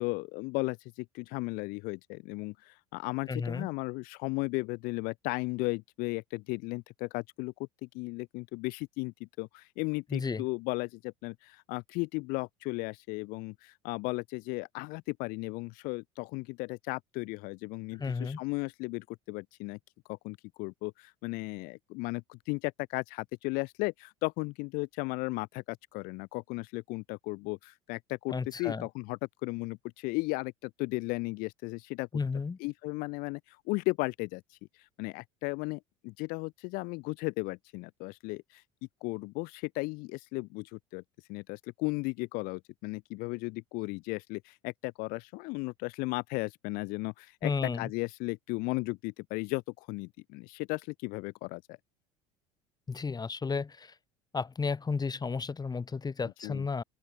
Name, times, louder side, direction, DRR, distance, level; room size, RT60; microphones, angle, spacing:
voice 1, 0.0-7.5 7.9-19.8 20.1-32.1 32.6-38.6 39.0-41.0 41.3-47.5 47.8-51.8 56.4-56.6, left 26 dB, 65° left, 2.8 m, -35 dB
voice 2, 3.3-3.7 10.1-10.4 18.0-18.4 28.3-28.9 32.1-32.6 47.4-47.9 52.9-53.9 54.3-56.8, left 5 dB, 25° left, 6.3 m, -33 dB
open air
hypercardioid pair, 70°, 16 cm